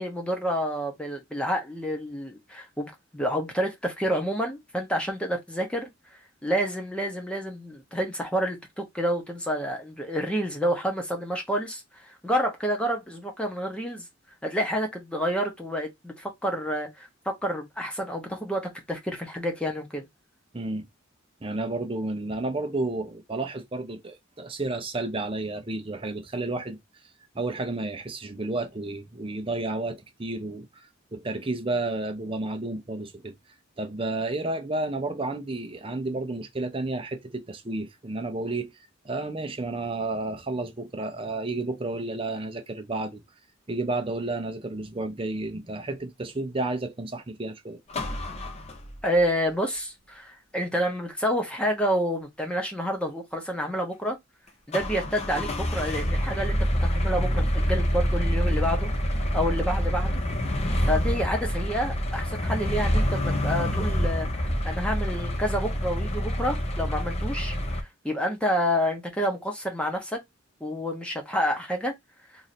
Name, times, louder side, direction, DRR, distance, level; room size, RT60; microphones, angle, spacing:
voice 1, 0.0-5.9 6.4-14.0 14.4-20.1 49.0-54.2 54.7-60.2 60.9-70.2 70.6-71.9, equal, 5° left, 0.9 m, -29 dB
voice 2, 20.5-20.9 21.4-26.8 27.3-33.3 33.8-43.2 43.7-47.8, right 2 dB, 25° right, 0.6 m, -31 dB
sound 1, 47.9-49.2 54.7-67.8, equal, 30° left, 0.8 m, -27 dB
3.1 x 2.7 x 4.0 m
head